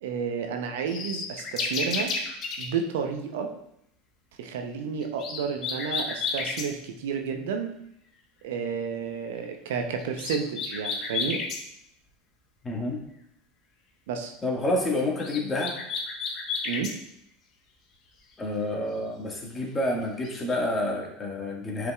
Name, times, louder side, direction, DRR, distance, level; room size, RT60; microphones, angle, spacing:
voice 1, 0.0-2.1 2.6-3.5 4.4-7.7 8.4-11.4 14.1-14.3 16.6-16.9, right 6 dB, 65° right, 5 dB, 0.7 m, -31 dB
sound 1, 0.9-2.7 5.0-6.7 10.0-11.6 15.0-17.0 20.0-20.6, left 4 dB, 45° left, 1.2 m, -31 dB
voice 2, 12.6-13.0 14.4-15.8 18.4-21.9, left 1 dB, 20° left, -1 dB, 1.7 m, -28 dB
9.2 x 4.9 x 2.3 m, 0.76 s
figure-of-eight pair, 80°, 0 cm